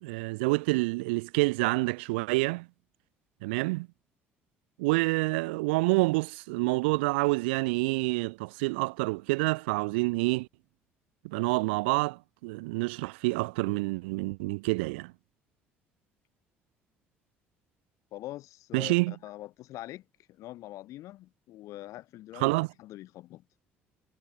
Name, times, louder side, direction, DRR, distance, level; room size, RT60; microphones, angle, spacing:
voice 1, 0.0-2.7 3.4-3.9 4.8-10.5 11.2-15.1 18.7-19.1 22.4-22.7, right 25 dB, 70° right, 0.4 m, -28 dB
voice 2, 18.1-22.4 22.8-23.4, left 15 dB, 60° left, 2.9 m, -44 dB
figure-of-eight pair, 55°, 6 cm